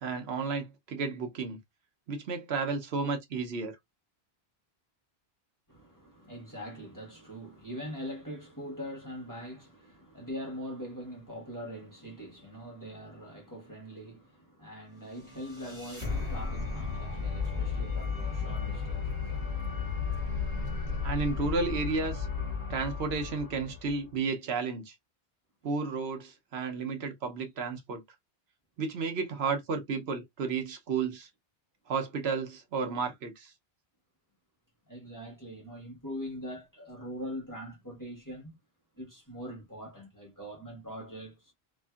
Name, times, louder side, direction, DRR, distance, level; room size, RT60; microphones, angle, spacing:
voice 1, 0.0-1.6 2.1-3.8 21.0-22.3 22.7-24.9 25.6-28.0 28.8-31.3 31.9-33.5, right 4 dB, 75° right, 1.0 m, -32 dB
voice 2, 5.7-19.4 34.9-38.6 39.0-41.5, equal, 20° left, 1.2 m, -42 dB
sound 1, 15.0-24.1, left 5 dB, 35° right, 1.5 m, -34 dB
2.9 x 2.6 x 2.2 m
omnidirectional pair, 1.1 m